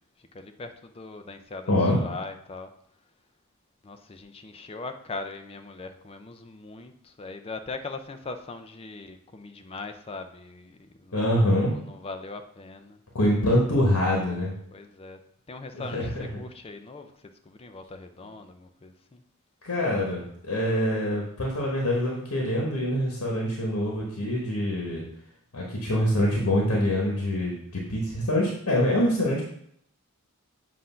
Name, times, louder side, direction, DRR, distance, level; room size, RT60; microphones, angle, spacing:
voice 1, 0.2-2.7 3.8-13.0 14.7-15.2 15.5-19.2, left 3 dB, 25° left, 7 dB, 0.4 m, -40 dB
voice 2, 1.7-2.0 11.1-11.7 13.1-14.5 15.7-16.2 19.6-25.0 25.5-29.4, left 1 dB, 70° left, -2 dB, 1.2 m, -25 dB
7.7 x 2.6 x 5.5 m, 0.70 s
head